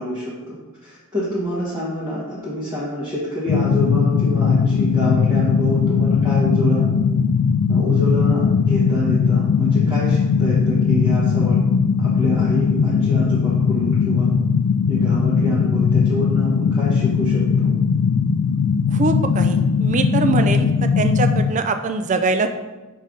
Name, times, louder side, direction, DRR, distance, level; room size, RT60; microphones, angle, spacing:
voice 1, 0.0-6.9 7.7-11.6 12.0-14.3 14.9-17.7 20.2-20.5, equal, 15° right, -10 dB, 1.3 m, -27 dB
sound 1, 3.5-21.5, left 6 dB, 80° left, 0.3 m, -18 dB
voice 2, 18.9-20.7 21.0-22.5, right 3 dB, 35° right, 8 dB, 0.4 m, -22 dB
5.4 x 5.4 x 3.7 m, 1.2 s
head